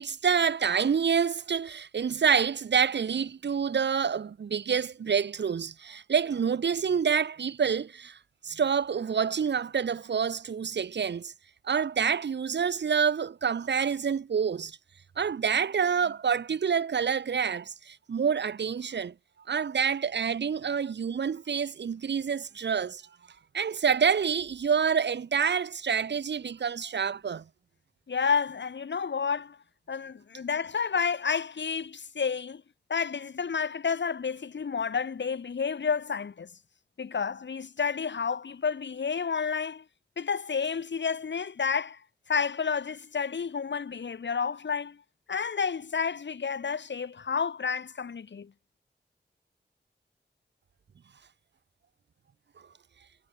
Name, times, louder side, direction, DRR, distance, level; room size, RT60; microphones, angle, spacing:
voice 1, 0.0-8.2 8.4-11.3 11.6-14.8 15.2-19.1 19.5-23.0 23.5-27.4, right 6 dB, 75° right, 1.0 m, -27 dB
voice 2, 28.1-29.6 29.9-32.6 32.9-36.5 37.0-39.8 40.2-42.0 42.3-45.0 45.3-48.5, left 6 dB, 80° left, 4.9 m, -30 dB
cardioid pair, 40°, 18 cm